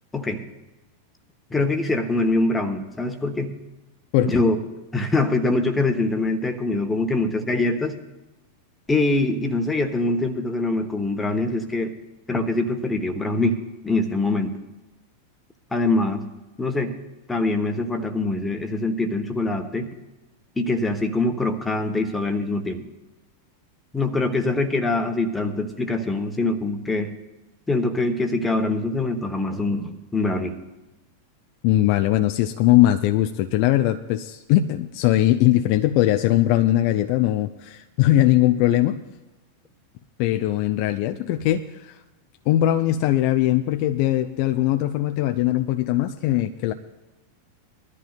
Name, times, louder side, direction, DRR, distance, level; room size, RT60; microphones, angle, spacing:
voice 1, 0.1-0.4 1.5-3.5 4.2-4.6 4.9-8.0 8.9-11.9 12.3-14.5 15.7-16.2 16.6-16.9 17.3-19.9 20.6-22.8 23.9-27.1 27.7-30.6, left 2 dB, 10° left, 7 dB, 1.2 m, -24 dB
voice 2, 31.6-39.0 40.2-41.9 42.5-46.7, left 14 dB, 45° left, 7 dB, 0.5 m, -20 dB
21.0 x 13.0 x 2.4 m, 1.1 s
figure-of-eight pair, 90°, 0 cm